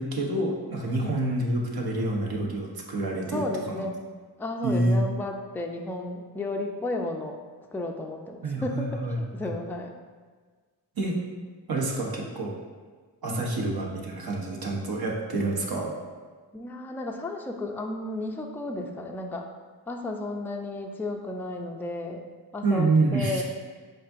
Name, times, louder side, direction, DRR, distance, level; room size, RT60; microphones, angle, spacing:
voice 1, 0.0-3.9 4.6-5.0 8.4-9.5 11.0-11.2 11.7-12.5 13.2-15.9 22.6-23.4, right 2 dB, 50° right, -1 dB, 1.0 m, -27 dB
voice 2, 0.9-1.2 3.3-4.0 4.4-7.4 7.7-9.9 13.3-13.7 16.5-19.4 19.9-22.3 22.5-23.4, left 1 dB, 5° left, 2 dB, 0.4 m, -33 dB
5.5 x 3.7 x 2.6 m, 1.5 s
cardioid pair, 55°, 46 cm